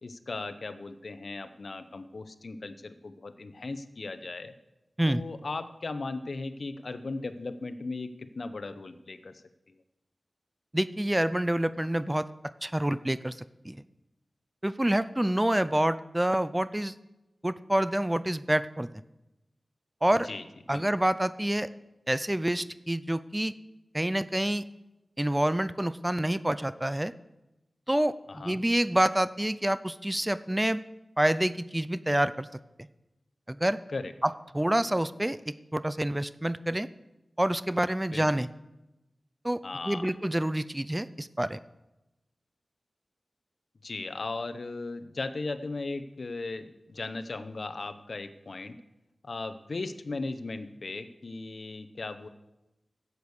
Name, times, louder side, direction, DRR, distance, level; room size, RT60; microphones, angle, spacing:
voice 1, 0.0-4.5 5.1-9.4 20.2-20.4 20.7-20.8 28.3-28.6 33.9-34.1 38.1-38.4 39.6-40.1 43.8-48.8 49.2-52.3, left 3 dB, 65° left, 11 dB, 0.8 m, -37 dB
voice 2, 10.7-12.3 12.6-13.8 14.6-16.9 17.4-18.9 20.0-20.3 20.7-21.7 22.1-23.5 23.9-24.7 25.2-27.1 27.9-28.1 28.4-30.8 31.2-32.5 33.5-33.8 34.2-36.9 37.4-38.5 39.4-41.6, right 1 dB, 15° right, 15 dB, 0.4 m, -27 dB
11.0 x 8.2 x 7.1 m, 0.97 s
wide cardioid pair, 70°, 0 cm